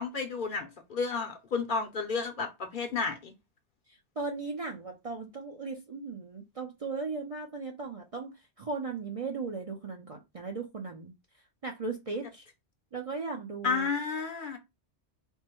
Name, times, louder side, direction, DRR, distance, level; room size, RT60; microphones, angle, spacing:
voice 1, 0.0-3.3 13.6-14.6, left 4 dB, 55° left, 0.7 m, -32 dB
voice 2, 4.2-11.1 11.6-12.5 12.9-13.9, right 4 dB, 40° right, 0.5 m, -37 dB
3.5 x 2.1 x 4.3 m
omnidirectional pair, 1.1 m